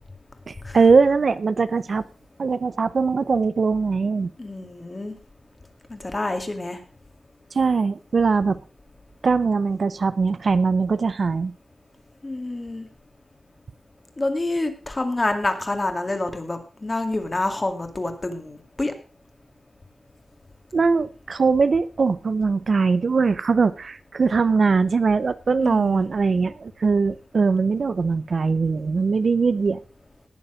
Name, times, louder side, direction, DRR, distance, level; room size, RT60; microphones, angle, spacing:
voice 1, 0.5-2.1 2.4-4.3 7.5-8.6 9.2-11.5 20.7-29.8, right 4 dB, 55° right, 15 dB, 0.6 m, -21 dB
voice 2, 4.4-5.1 5.9-6.8 12.2-12.9 14.2-18.9 25.6-26.1, left 2 dB, 25° left, 7 dB, 2.2 m, -27 dB
19.0 x 7.2 x 5.0 m, 0.36 s
wide cardioid pair, 140°, 0 cm